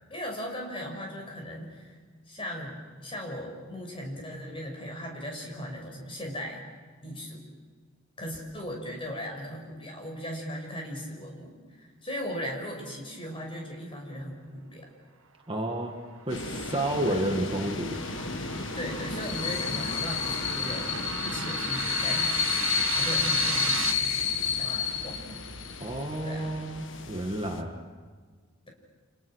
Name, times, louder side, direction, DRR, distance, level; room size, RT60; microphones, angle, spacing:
voice 1, 0.1-2.0 2.2-6.6 7.0-7.4 8.2-14.9 17.0-17.3 18.7-25.1 26.2-26.5, equal, 25° left, 1 dB, 6.1 m, -38 dB
voice 2, 15.5-16.0 16.3-18.0 25.8-27.7, right 1 dB, 25° right, 2 dB, 1.8 m, -30 dB
sound 1, 16.2-23.9, right 7 dB, 80° right, 2.0 m, -36 dB
sound 2, 16.3-27.6, left 6 dB, 60° left, 1.6 m, -31 dB
30.0 x 27.5 x 6.4 m, 1.5 s
head